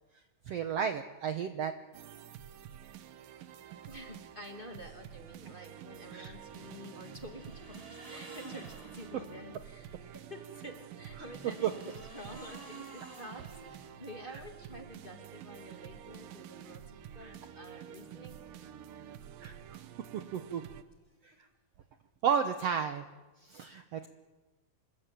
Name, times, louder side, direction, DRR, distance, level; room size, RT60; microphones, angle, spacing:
voice 1, 0.5-1.7 6.1-6.3 11.6-11.7 17.2-17.3 19.4-19.8 20.3-20.6 21.2-21.3 22.2-23.1 23.4-24.1, right 7 dB, 65° right, 8 dB, 1.7 m, -32 dB
sound 1, 1.9-20.8, right 10 dB, 80° right, 2.8 m, -49 dB
voice 2, 3.9-18.4, equal, 15° left, 3 dB, 2.5 m, -49 dB
sound 2, 6.3-9.5 10.9-14.3, right 2 dB, 25° right, 5.8 m, -51 dB
26.5 x 21.5 x 9.0 m, 1.2 s
omnidirectional pair, 3.9 m